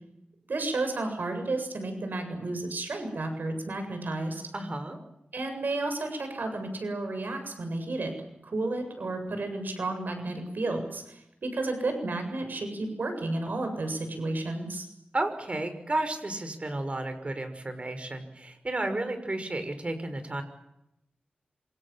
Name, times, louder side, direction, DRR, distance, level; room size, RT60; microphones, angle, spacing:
voice 1, 0.5-4.4 5.3-8.1 8.4-14.9, right 2 dB, 75° right, 6 dB, 7.6 m, -32 dB
voice 2, 4.5-5.0 15.1-20.4, right 2 dB, 40° right, 8 dB, 6.0 m, -32 dB
27.5 x 26.5 x 7.5 m, 0.84 s
wide cardioid pair, 80°, 3 cm